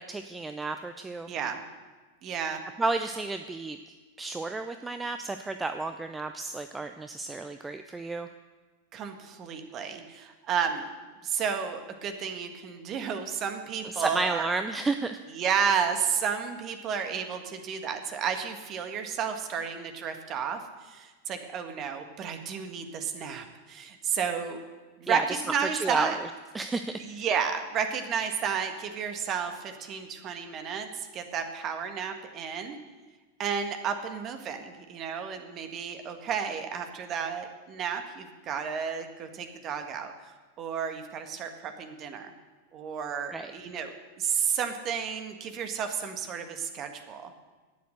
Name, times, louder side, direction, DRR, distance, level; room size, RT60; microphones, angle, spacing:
voice 1, 0.0-1.3 2.8-3.8 4.2-8.3 13.8-15.2 25.1-25.4 25.7-26.3 26.5-27.0 43.3-43.5, right 3 dB, 10° right, 8 dB, 0.6 m, -31 dB
voice 2, 1.3-1.6 2.2-2.6 8.9-10.8 11.2-14.5 15.3-24.6 25.0-26.2 27.0-32.8 33.4-40.1 40.6-42.3 42.7-43.9 44.2-47.3, right 7 dB, 35° right, 6 dB, 1.7 m, -32 dB
12.5 x 9.4 x 7.9 m, 1.3 s
figure-of-eight pair, 90°, 0 cm